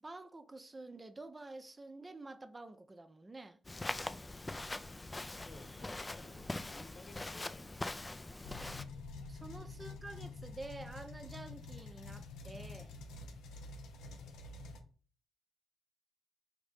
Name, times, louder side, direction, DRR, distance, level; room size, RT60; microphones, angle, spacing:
voice 1, 0.0-3.6 9.3-13.0, right 2 dB, 30° right, 0.5 m, -49 dB
Walk footsteps, 3.6-8.8, left 2 dB, 25° left, 0.4 m, -42 dB
voice 2, 5.4-7.9 8.4-9.0 9.4-9.9, left 2 dB, 60° left, 1.2 m, -57 dB
sound 1, 8.4-14.8, left 3 dB, 90° left, 0.5 m, -48 dB
4.9 x 2.6 x 3.5 m
supercardioid pair, 50°, 0 cm